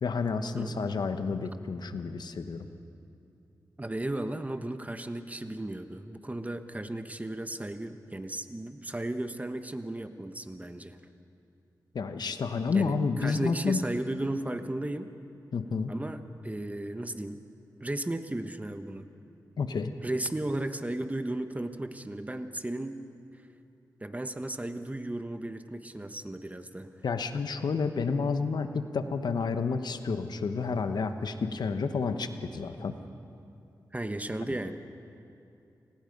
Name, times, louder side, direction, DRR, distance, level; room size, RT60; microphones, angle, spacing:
voice 1, 0.0-2.7 11.9-13.8 15.5-15.9 19.6-19.9 27.0-32.9 34.4-34.5, left 4 dB, 75° left, 8 dB, 1.2 m, -30 dB
voice 2, 3.8-11.0 12.7-15.1 15.9-17.4 17.8-19.1 20.0-23.0 24.0-26.9 33.9-34.8, right 1 dB, 20° right, 9 dB, 1.3 m, -35 dB
29.0 x 19.5 x 5.4 m, 2.7 s
cardioid pair, 50°, 7 cm